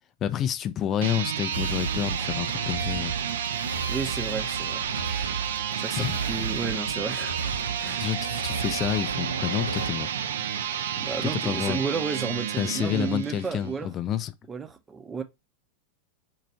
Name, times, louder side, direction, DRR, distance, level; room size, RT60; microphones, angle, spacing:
voice 1, 0.2-3.1 5.9-6.2 7.8-10.1 11.2-11.8 12.6-14.3, left 10 dB, 30° left, 0.5 m, -29 dB
sound 1, 0.9-13.7, right 9 dB, 60° right, 0.4 m, -31 dB
sound 2, 1.5-9.9, right 4 dB, 90° left, 0.7 m, -34 dB
voice 2, 3.9-4.8 5.8-7.4 7.8-8.1 11.0-13.9 14.5-15.2, right 5 dB, 15° right, 0.7 m, -32 dB
4.7 x 2.5 x 4.3 m
figure-of-eight pair, 90°, 0 cm